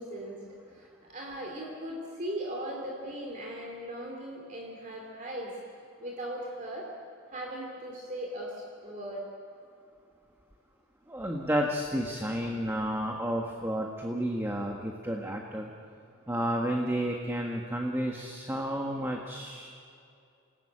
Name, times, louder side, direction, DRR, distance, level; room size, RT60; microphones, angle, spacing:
voice 1, 0.0-5.6 6.0-6.9 7.3-9.3, right 1 dB, 35° right, -1 dB, 3.0 m, -38 dB
voice 2, 11.1-15.7 16.3-19.7, equal, 10° right, 1 dB, 1.5 m, -31 dB
28.5 x 19.0 x 8.9 m, 2.5 s
head